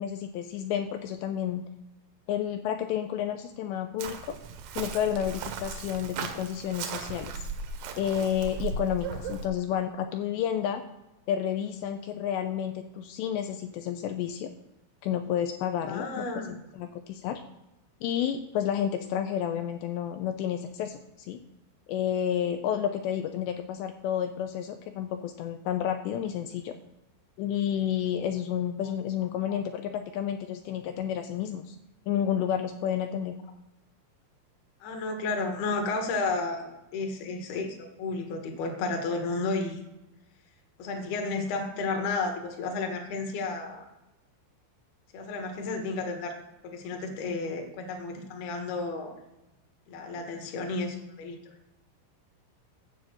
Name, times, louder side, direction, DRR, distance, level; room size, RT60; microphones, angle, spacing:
voice 1, 0.0-1.6 2.3-4.4 4.8-7.5 8.0-10.8 11.3-14.5 15.0-16.3 16.8-17.4 18.0-21.0 21.3-21.4 21.9-26.7 27.4-31.8 32.1-33.4, left 9 dB, 80° left, 7 dB, 2.6 m, -30 dB
Chirp tweet, 4.0-9.5, right 6 dB, 80° right, 3.1 m, -37 dB
voice 2, 15.9-16.6 29.5-29.6 34.8-39.8 40.8-43.8 45.1-46.4 46.6-49.1 49.9-51.4, left 3 dB, 65° left, 3 dB, 3.2 m, -32 dB
9.3 x 5.7 x 7.7 m, 0.97 s
omnidirectional pair, 5.5 m